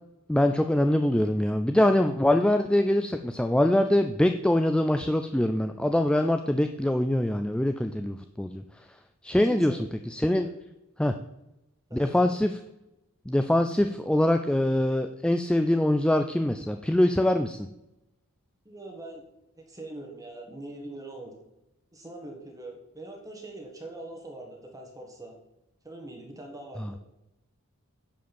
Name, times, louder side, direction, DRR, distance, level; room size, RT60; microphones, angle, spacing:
voice 1, 0.3-8.6 9.2-9.8 10.1-10.5 11.0-11.1 11.9-12.5 13.3-17.7, left 1 dB, 5° left, 7 dB, 0.3 m, -23 dB
voice 2, 9.4-9.8 10.4-10.6 11.9-12.2 18.6-19.2 19.6-21.3 21.9-25.4 25.8-27.0, right 2 dB, 15° right, 2 dB, 1.6 m, -42 dB
10.0 x 5.1 x 7.0 m, 0.91 s
head